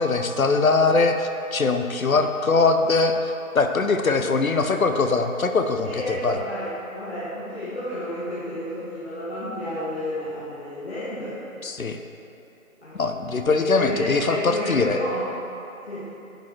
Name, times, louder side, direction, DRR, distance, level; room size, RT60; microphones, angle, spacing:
voice 1, 0.0-6.4 11.6-12.0 12.9-15.0, left 3 dB, 75° left, 7 dB, 0.8 m, -22 dB
voice 2, 5.9-11.4 12.8-13.0 13.7-15.2 15.9-16.1, left 1 dB, 45° left, -10 dB, 1.8 m, -31 dB
10.5 x 5.1 x 4.4 m, 2.8 s
figure-of-eight pair, 160°, 42 cm